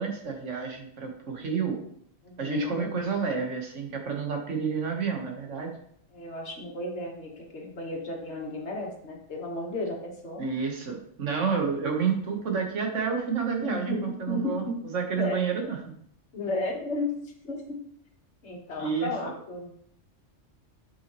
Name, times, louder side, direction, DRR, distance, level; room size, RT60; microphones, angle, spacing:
voice 1, 0.0-1.8 2.4-5.7 10.4-14.6 14.9-15.8 18.8-19.4, right 6 dB, 80° right, 2 dB, 1.6 m, -29 dB
voice 2, 2.2-2.9 6.1-10.5 12.5-12.6 13.6-14.8 15.2-15.4 16.3-17.1 17.4-17.8 18.4-19.7, left 2 dB, 65° left, 0 dB, 1.6 m, -33 dB
7.0 x 5.9 x 3.0 m, 0.66 s
omnidirectional pair, 1.2 m